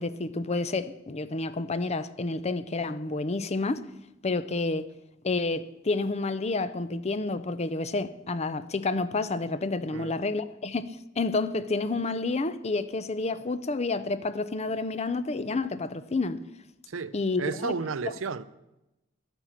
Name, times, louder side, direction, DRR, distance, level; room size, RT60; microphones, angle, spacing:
voice 1, 0.0-3.8 4.2-4.9 5.2-16.4 17.1-17.7, left 3 dB, 35° left, 0.6 m, -29 dB
voice 2, 16.9-18.4, right 4 dB, 85° right, 0.7 m, -33 dB
11.5 x 9.1 x 7.3 m
head